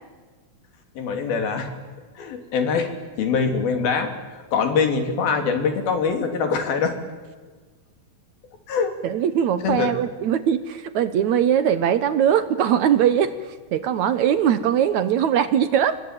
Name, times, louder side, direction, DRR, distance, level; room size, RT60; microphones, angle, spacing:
voice 1, 1.0-1.7 2.2-2.9 3.2-4.1 4.5-6.9 8.7-8.9 9.6-9.9, left 5 dB, 90° left, 6 dB, 4.9 m, -23 dB
voice 2, 9.0-16.0, right 9 dB, 70° right, 13 dB, 2.0 m, -21 dB
26.0 x 22.5 x 9.1 m, 1.4 s
omnidirectional pair, 4.1 m